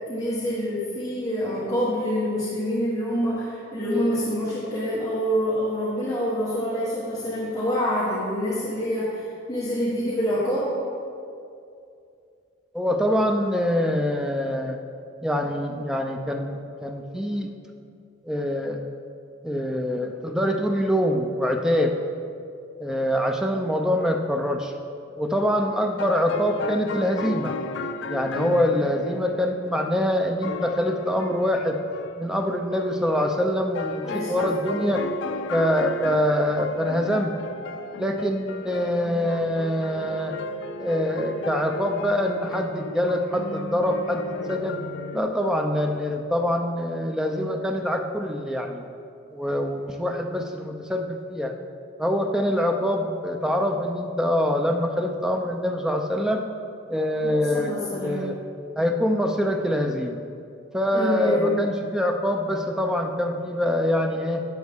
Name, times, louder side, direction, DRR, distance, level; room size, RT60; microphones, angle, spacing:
voice 1, 0.1-10.7 34.0-34.8 57.2-58.3 60.9-61.6, equal, 15° left, -9 dB, 1.3 m, -26 dB
voice 2, 12.7-14.8 15.2-17.5 18.3-18.8 19.4-21.9 22.8-24.7 25.2-27.5 28.1-31.8 32.2-35.0 35.5-37.3 38.0-40.3 40.8-44.8 45.1-48.9 49.3-51.5 52.0-56.5 56.9-58.4 58.8-60.2 60.7-64.4, equal, 5° right, 3 dB, 0.5 m, -24 dB
sound 1, 25.6-45.2, left 2 dB, 60° left, 0.4 m, -35 dB
10.5 x 7.2 x 3.6 m, 2.5 s
head